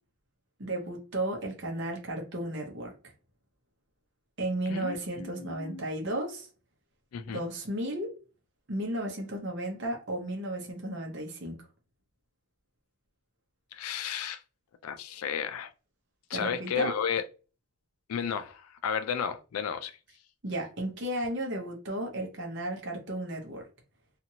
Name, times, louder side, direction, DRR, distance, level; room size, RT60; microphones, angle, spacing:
voice 1, 0.6-2.9 4.4-6.5 7.3-8.1 8.7-11.6 16.3-17.0 20.4-23.7, right 1 dB, 55° right, 0.8 m, -34 dB
voice 2, 4.7-5.8 7.1-7.5 13.7-14.4 14.8-15.7 16.3-17.2 18.1-20.0, left 7 dB, 90° left, 0.4 m, -33 dB
2.9 x 2.5 x 2.7 m
head